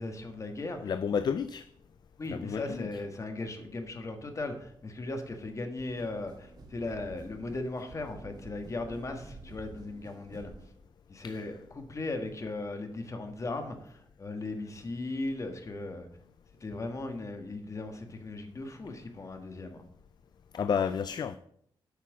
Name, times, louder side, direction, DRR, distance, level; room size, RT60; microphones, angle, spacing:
voice 1, 0.0-0.9 2.2-10.5 11.1-16.1 16.6-19.8, left 2 dB, 35° left, 1.6 m, -37 dB
voice 2, 0.8-1.6 2.3-2.9 11.2-11.4 20.5-21.4, left 7 dB, 55° left, 0.4 m, -31 dB
sound 1, 5.8-10.7, right 3 dB, 50° right, 1.8 m, -50 dB
8.4 x 5.9 x 6.1 m
wide cardioid pair, 110°, 9 cm